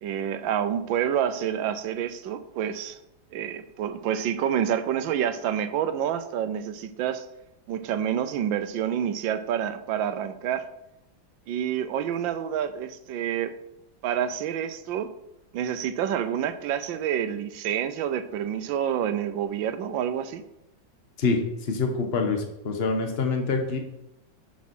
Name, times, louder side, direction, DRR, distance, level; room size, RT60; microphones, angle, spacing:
voice 1, 0.0-3.0 3.3-7.3 7.7-10.7 11.5-13.5 14.0-15.1 15.5-20.5, right 9 dB, 75° right, 11 dB, 1.3 m, -28 dB
voice 2, 21.7-23.8, left 4 dB, 35° left, 4 dB, 1.2 m, -25 dB
7.3 x 7.2 x 4.4 m, 0.85 s
omnidirectional pair, 2.2 m